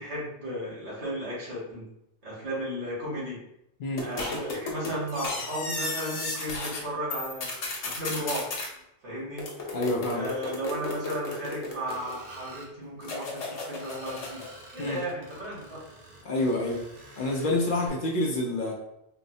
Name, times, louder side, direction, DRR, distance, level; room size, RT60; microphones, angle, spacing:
voice 1, 0.0-1.9 2.2-3.4 4.0-7.5 7.8-8.5 9.0-9.5 10.1-14.4 14.7-15.8, equal, 90° right, -7 dB, 1.7 m, -34 dB
sound 1, 4.0-6.8 7.1-8.7 9.4-12.3 13.0-14.5, left 2 dB, 85° left, 1.1 m, -34 dB
voice 2, 9.7-10.3 14.8-15.0 16.2-16.8 17.2-18.7, left 2 dB, 55° left, -1 dB, 0.7 m, -27 dB
Screech, 11.9-12.7 13.8-17.9, right 1 dB, 65° right, 1.0 m, -48 dB
4.0 x 2.0 x 2.6 m, 0.81 s
omnidirectional pair, 1.2 m